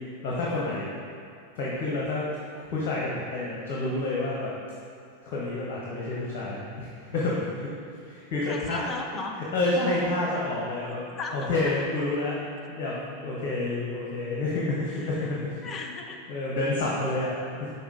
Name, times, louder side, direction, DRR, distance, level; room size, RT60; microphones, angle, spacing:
voice 1, 0.2-0.9 1.5-2.3 2.5-4.5 5.2-7.7 8.1-8.8 9.5-11.0 11.3-12.4 12.7-15.6 16.3-17.7, left 2 dB, 45° left, -5 dB, 1.1 m, -29 dB
voice 2, 8.5-9.3 11.1-11.7 14.9-15.3 15.6-16.3, left 4 dB, 25° left, 2 dB, 0.6 m, -37 dB
6.1 x 4.2 x 4.9 m, 2.5 s
figure-of-eight pair, 90°, 0 cm